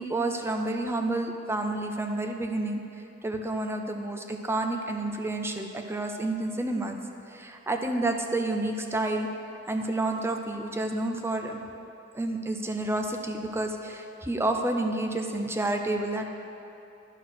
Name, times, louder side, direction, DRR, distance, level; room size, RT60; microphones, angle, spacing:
voice 1, 0.0-2.8 3.2-7.0 7.3-9.3 9.7-11.6 12.1-16.3, right 2 dB, 10° right, 3 dB, 0.5 m, -29 dB
11.0 x 4.6 x 6.0 m, 2.8 s
head